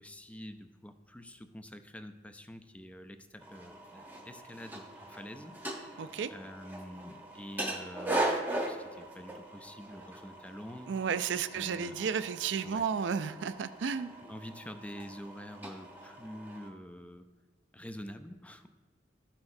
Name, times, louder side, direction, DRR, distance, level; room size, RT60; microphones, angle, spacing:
voice 1, 0.0-5.6 6.3-10.9 11.5-12.0 12.6-12.8 14.2-17.3 17.7-18.7, equal, 10° left, 8 dB, 0.4 m, -47 dB
sound 1, 3.4-16.7, right 1 dB, 10° right, 0.9 m, -40 dB
voice 2, 6.0-6.3 10.9-14.2, right 6 dB, 75° right, 13 dB, 0.4 m, -33 dB
13.0 x 5.8 x 2.6 m, 1.3 s
head